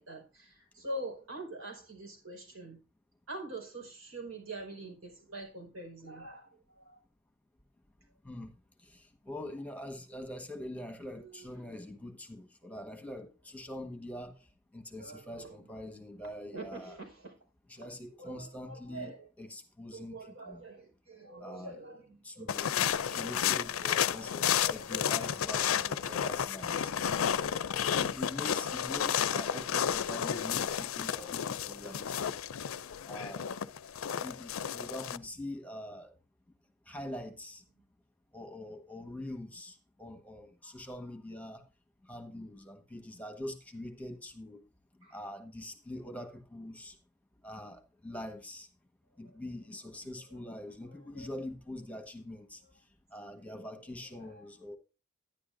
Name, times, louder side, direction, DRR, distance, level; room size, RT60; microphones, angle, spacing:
voice 1, 0.0-2.8 3.3-7.0 11.1-11.8 15.0-15.6 16.5-17.3 17.8-17.9 18.2-19.3 19.9-23.5 23.9-24.0 45.0-45.2 51.2-51.3 53.6-53.7 54.2-54.4, right 2 dB, 90° right, 4.8 m, -45 dB
voice 2, 8.8-14.4 14.7-17.0 17.7-20.6 21.4-21.8 22.2-22.8 23.1-27.1 27.9-32.4 33.0-33.5 34.2-36.1 36.9-37.6 38.3-41.6 42.0-44.6 45.1-47.0 47.4-48.7 49.2-52.6 53.1-54.8, left 1 dB, 5° left, 1.4 m, -44 dB
sound 1, 22.5-35.2, left 9 dB, 85° left, 0.5 m, -32 dB
11.0 x 10.5 x 2.6 m
head